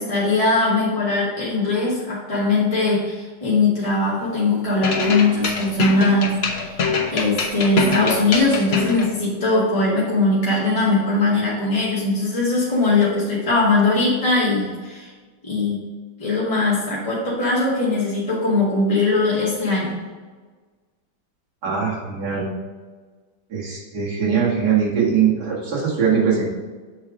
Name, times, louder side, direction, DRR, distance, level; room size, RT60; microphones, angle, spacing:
voice 1, 0.0-6.4 6.6-6.8 7.1-15.1 15.4-15.8 16.2-19.9, left 3 dB, 20° left, -8 dB, 1.7 m, -20 dB
sound 1, 4.8-9.1, left 4 dB, 45° left, 0.9 m, -23 dB
voice 2, 21.6-22.5 23.5-26.4, right 7 dB, 55° right, -5 dB, 2.4 m, -21 dB
7.5 x 4.5 x 5.0 m, 1.4 s
omnidirectional pair, 2.1 m